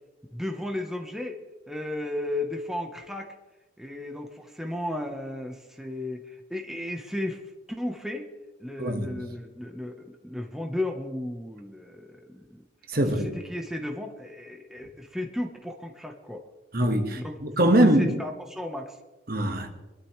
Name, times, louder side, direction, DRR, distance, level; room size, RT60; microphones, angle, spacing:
voice 1, 0.3-3.3 3.8-7.4 7.7-8.3 8.6-12.6 13.1-16.4 17.1-17.4 17.8-19.0, left 1 dB, ahead, 1.1 m, -34 dB
voice 2, 8.8-9.2 12.9-13.4 16.7-18.2 19.3-19.7, right 1 dB, 55° right, 1.6 m, -23 dB
22.5 x 12.5 x 3.3 m
head